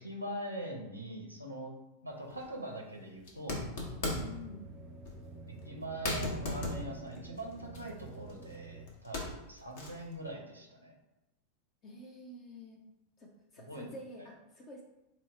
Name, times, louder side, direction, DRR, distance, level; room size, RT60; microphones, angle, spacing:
voice 1, 0.0-1.7 2.0-3.6 5.7-10.9 13.7-13.9 14.2-14.3, right 1 dB, 90° right, 0 dB, 0.7 m, -42 dB
sound 1, 2.3-2.5 3.2-4.4 5.0-5.2 5.6-5.7 6.0-8.6 8.9-10.1, left 2 dB, 55° left, 0.8 m, -37 dB
sound 2, 3.7-8.9, right 4 dB, 20° right, 0.3 m, -50 dB
voice 2, 4.1-4.7 11.8-12.8 13.2-14.8, left 1 dB, 30° left, 0 dB, 0.5 m, -48 dB
4.2 x 2.1 x 4.1 m, 0.93 s
figure-of-eight pair, 90°, 0 cm